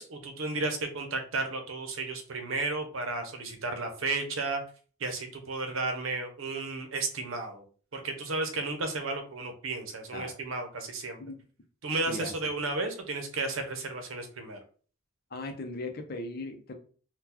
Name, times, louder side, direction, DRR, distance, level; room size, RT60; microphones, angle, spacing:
voice 1, 0.0-4.6 5.0-7.6 7.9-11.2 11.8-14.6, right 3 dB, 85° right, 5 dB, 0.7 m, -33 dB
voice 2, 15.3-16.7, left 2 dB, 50° left, 5 dB, 0.6 m, -38 dB
2.9 x 2.3 x 3.8 m, 0.41 s
head